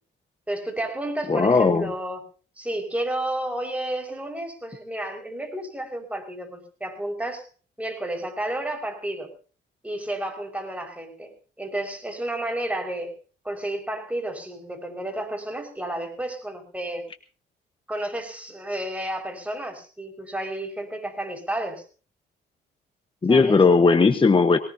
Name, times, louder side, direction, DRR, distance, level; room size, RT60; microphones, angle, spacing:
voice 1, 0.5-2.2 2.6-7.5 7.8-9.3 9.8-13.1 13.4-17.1 17.9-21.8 23.3-23.6, right 1 dB, 5° right, 2 dB, 5.5 m, -31 dB
voice 2, 1.3-1.9 23.2-24.6, left 4 dB, 25° left, 8 dB, 1.3 m, -17 dB
21.0 x 19.0 x 2.8 m, 0.38 s
cardioid pair, 90°, 20 cm